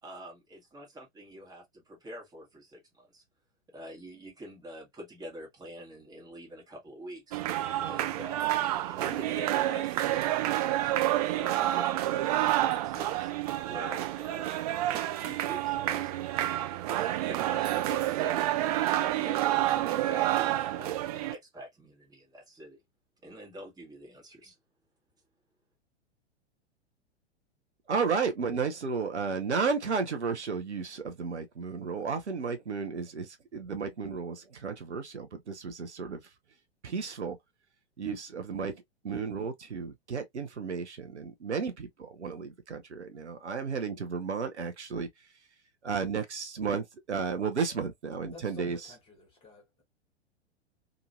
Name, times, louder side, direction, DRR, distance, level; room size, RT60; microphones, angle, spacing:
voice 1, 0.0-3.2 3.7-7.4 7.8-10.9 11.3-13.3 13.6-16.2 16.7-18.5 18.8-22.8 23.2-24.5, equal, 10° right, 1.3 m, -46 dB
sound 1, 7.3-21.3, right 14 dB, 35° right, 0.5 m, -29 dB
voice 2, 27.9-36.2 36.8-37.4 38.0-38.8 39.0-45.1 45.8-48.8, right 5 dB, 75° right, 0.7 m, -33 dB
voice 3, 48.3-49.8, left 2 dB, 15° left, 1.3 m, -50 dB
3.0 x 2.5 x 2.5 m
figure-of-eight pair, 100°, 34 cm